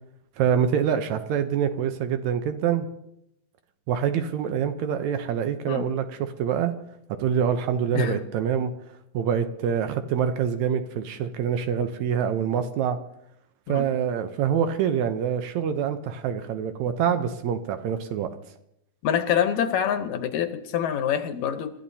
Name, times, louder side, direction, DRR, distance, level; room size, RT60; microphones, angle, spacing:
voice 1, 0.4-2.9 3.9-6.7 7.1-8.7 9.1-13.0 13.7-18.3, right 8 dB, 75° right, 8 dB, 2.1 m, -25 dB
voice 2, 19.0-21.7, left 8 dB, 75° left, 8 dB, 2.3 m, -26 dB
28.5 x 13.5 x 2.8 m, 0.80 s
omnidirectional pair, 3.5 m